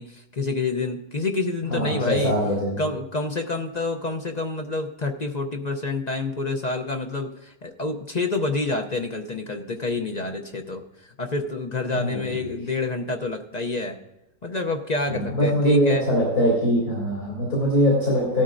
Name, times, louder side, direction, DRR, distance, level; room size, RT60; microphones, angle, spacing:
voice 1, 0.0-2.3 2.8-14.0 14.4-16.0, left 3 dB, 40° left, 3 dB, 0.6 m, -28 dB
voice 2, 1.7-2.8 11.9-12.6 15.1-18.4, equal, 85° left, -5 dB, 4.0 m, -22 dB
17.5 x 13.0 x 2.6 m, 0.91 s
omnidirectional pair, 1.6 m